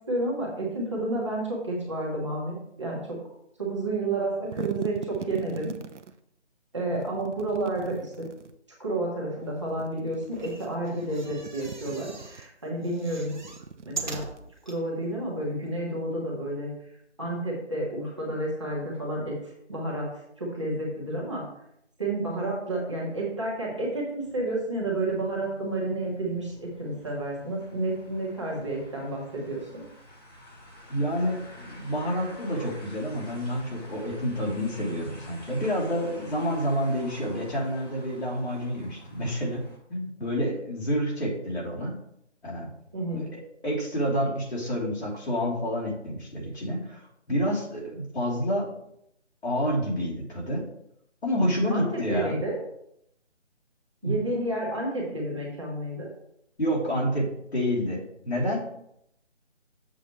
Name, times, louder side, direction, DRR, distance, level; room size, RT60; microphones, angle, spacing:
voice 1, 0.1-3.2 3.6-5.7 6.7-8.3 8.8-13.4 13.8-14.2 14.6-16.7 17.2-20.1 20.4-21.4 22.0-29.8 42.9-43.3 51.7-52.6 54.0-56.1, right 2 dB, 25° right, -4 dB, 1.4 m, -30 dB
sound 1, 4.2-6.2 7.0-8.6 9.5-10.5 10.9-12.4 13.0-14.8, right 5 dB, 75° right, 0.8 m, -42 dB
sound 2, 10.2-12.5 12.8-14.8 15.4-15.5 15.7-15.8, right 4 dB, 40° right, 1.1 m, -40 dB
sound 3, 24.2-39.8, left 1 dB, 35° left, 2.1 m, -49 dB
voice 2, 30.9-39.6 39.9-41.9 42.4-42.7 43.1-47.0 47.3-48.7 49.4-50.6 51.2-52.3 54.0-54.1 56.6-58.6, equal, 60° left, -4 dB, 3.4 m, -28 dB
7.5 x 7.2 x 3.2 m, 0.76 s
figure-of-eight pair, 175°, 35 cm